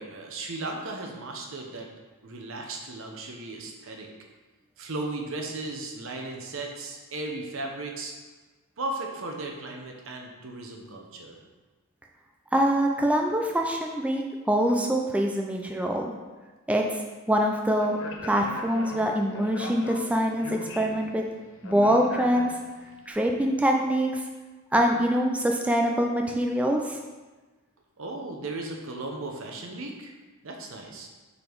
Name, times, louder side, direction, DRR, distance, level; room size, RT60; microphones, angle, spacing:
voice 1, 0.0-1.9 2.2-4.1 4.8-8.1 8.8-11.4 28.0-30.1 30.4-31.1, right 2 dB, 60° right, 1 dB, 0.9 m, -36 dB
voice 2, 12.5-14.2 14.5-16.1 16.7-16.9 17.3-18.0 18.2-21.2 21.6-22.5 23.1-24.2 24.7-27.0, equal, 5° right, 1 dB, 0.3 m, -24 dB
Speech, 17.8-22.9, left 2 dB, 60° left, 0.7 m, -39 dB
5.2 x 4.0 x 4.6 m, 1.3 s
head